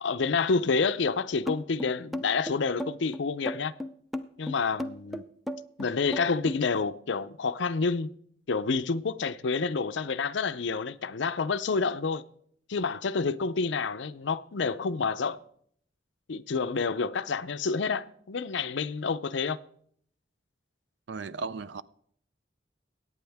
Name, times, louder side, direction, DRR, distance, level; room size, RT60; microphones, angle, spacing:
voice 1, 0.0-3.7 4.4-5.2 5.8-8.1 8.5-12.2 12.7-15.4 16.3-19.6, left 4 dB, 75° left, 0.6 m, -28 dB
sound 1, 1.5-6.6, left 1 dB, ahead, 0.5 m, -35 dB
voice 2, 21.1-21.8, right 4 dB, 70° right, 0.5 m, -35 dB
22.0 x 9.3 x 3.5 m
head